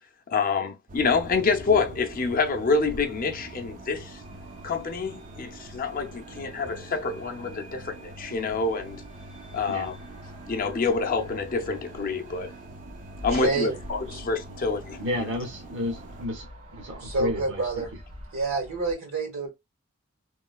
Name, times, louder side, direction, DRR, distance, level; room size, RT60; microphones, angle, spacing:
voice 1, 0.3-4.2 4.6-9.0 9.5-9.9 10.5-12.5 13.2-15.3, left 4 dB, 40° left, 0.5 m, -27 dB
sound 1, 0.9-16.3, right 2 dB, 35° right, 0.4 m, -45 dB
sound 2, 0.9-18.9, equal, 90° right, 1.5 m, -46 dB
voice 2, 13.3-13.8 14.1-14.2 17.0-17.9 18.3-19.5, right 3 dB, 75° right, 1.8 m, -28 dB
voice 3, 15.0-16.5 16.7-17.8, left 1 dB, 55° right, 0.8 m, -32 dB
3.0 x 2.7 x 2.2 m
head